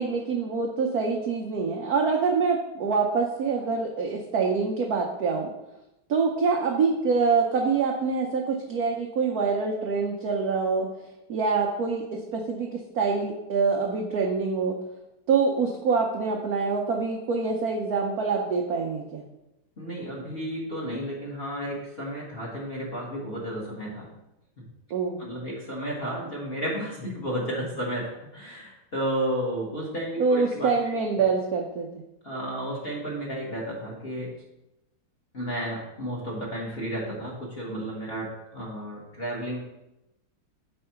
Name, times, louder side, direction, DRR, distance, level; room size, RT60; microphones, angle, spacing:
voice 1, 0.0-5.5 6.1-10.9 11.3-14.8 15.3-19.2 24.9-25.2 30.2-31.9, right 4 dB, 85° right, 1 dB, 0.8 m, -25 dB
voice 2, 19.8-24.1 24.6-24.7 25.2-31.2 32.2-34.3 35.3-39.6, right 1 dB, 35° left, -4 dB, 1.1 m, -32 dB
4.6 x 4.4 x 5.6 m, 0.92 s
omnidirectional pair, 2.4 m